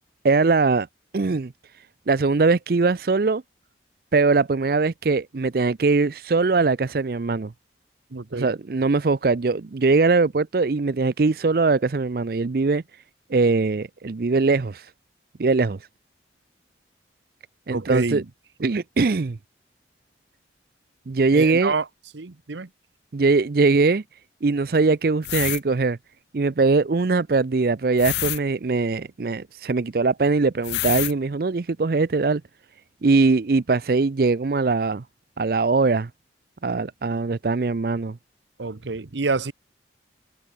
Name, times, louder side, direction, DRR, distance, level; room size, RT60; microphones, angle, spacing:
voice 1, 0.2-0.9 1.1-1.5 2.1-3.4 4.1-7.5 8.3-12.8 13.3-14.9 15.4-15.8 17.7-18.2 18.6-19.4 21.1-21.7 23.1-24.0 24.4-26.0 26.3-32.4 33.0-35.0 35.4-36.1 36.6-38.2, right 3 dB, 55° right, 0.5 m, -21 dB
voice 2, 8.1-8.5 17.7-18.2 21.3-21.8 22.1-22.7 38.6-39.5, right 3 dB, 80° right, 0.9 m, -27 dB
sound 1, 25.2-25.6 28.0-28.4 30.6-31.1, left 16 dB, 70° left, 0.3 m, -26 dB
head